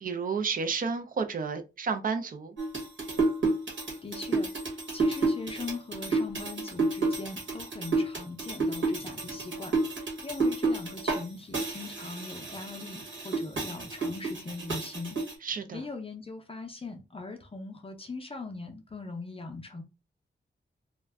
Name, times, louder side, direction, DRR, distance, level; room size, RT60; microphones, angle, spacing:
voice 1, 0.0-2.5 15.4-15.8, right 5 dB, 45° right, 0.4 m, -31 dB
sound 1, 2.6-11.2 11.5-15.3, right 3 dB, 85° right, 1.1 m, -30 dB
voice 2, 4.0-19.8, left 3 dB, 30° left, 0.5 m, -41 dB
2.4 x 2.1 x 3.3 m
wide cardioid pair, 145°, 19 cm